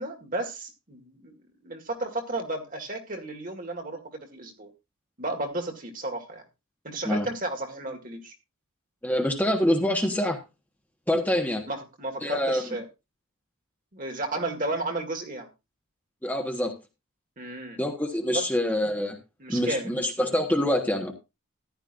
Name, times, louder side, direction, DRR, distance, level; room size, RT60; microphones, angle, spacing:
voice 1, 0.0-4.7 5.2-6.4 6.8-8.3 11.7-12.8 13.9-15.5 17.4-17.8 18.3-18.4 19.4-20.0, right 2 dB, 40° right, 4 dB, 1.9 m, -33 dB
voice 2, 9.0-10.4 11.1-11.6 12.2-12.6 16.2-16.7 17.8-19.2 19.5-21.1, left 1 dB, 10° left, 2 dB, 1.3 m, -25 dB
14.5 x 11.0 x 2.6 m, 0.25 s
head